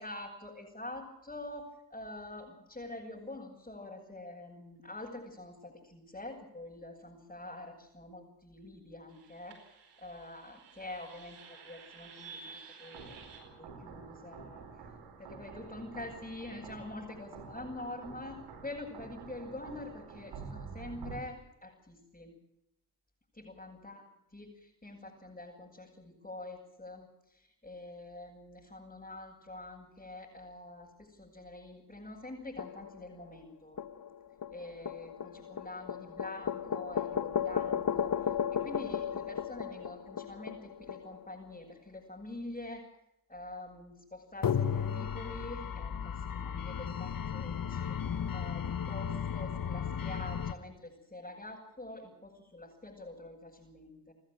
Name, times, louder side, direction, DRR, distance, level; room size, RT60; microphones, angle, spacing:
voice 1, 0.0-9.6 10.0-14.6 15.2-22.3 23.4-33.8 34.5-42.9 43.3-48.0 48.3-54.1, left 2 dB, 20° left, -3 dB, 7.9 m, -46 dB
sound 1, 9.1-21.2, right 5 dB, 90° right, 4.6 m, -49 dB
sound 2, 32.6-33.2 33.8-41.3 44.4-50.5, left 8 dB, 55° left, 1.5 m, -35 dB
29.5 x 12.5 x 9.3 m, 0.82 s
supercardioid pair, 50°, 41 cm